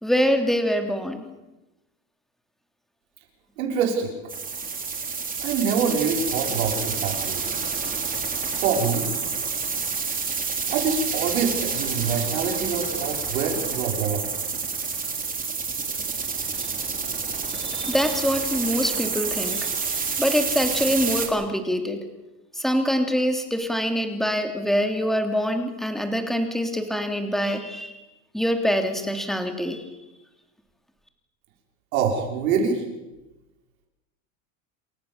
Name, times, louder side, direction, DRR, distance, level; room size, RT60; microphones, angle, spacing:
voice 1, 0.0-1.2 17.5-19.7 20.2-22.0 22.5-28.0 28.3-29.8, equal, ahead, 6 dB, 3.0 m, -24 dB
voice 2, 3.6-4.2 5.4-7.4 8.6-9.1 10.7-14.3 31.9-32.8, right 6 dB, 90° right, 1 dB, 6.0 m, -25 dB
sound 1, 4.3-21.3, right 5 dB, 20° right, 3.9 m, -28 dB
28.5 x 15.0 x 7.3 m, 1.0 s
supercardioid pair, 120°, 41 cm